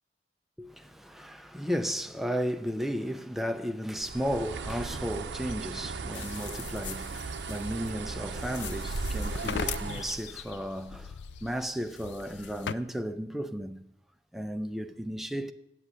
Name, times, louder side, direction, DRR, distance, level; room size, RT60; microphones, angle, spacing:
voice 1, 0.6-13.9 14.3-15.5, equal, ahead, 0.5 m, -34 dB
Bird, 4.0-10.2, right 4 dB, 80° right, 0.6 m, -37 dB
sound 1, 6.1-12.7, left 7 dB, 75° left, 0.4 m, -40 dB
8.5 x 7.6 x 8.2 m
head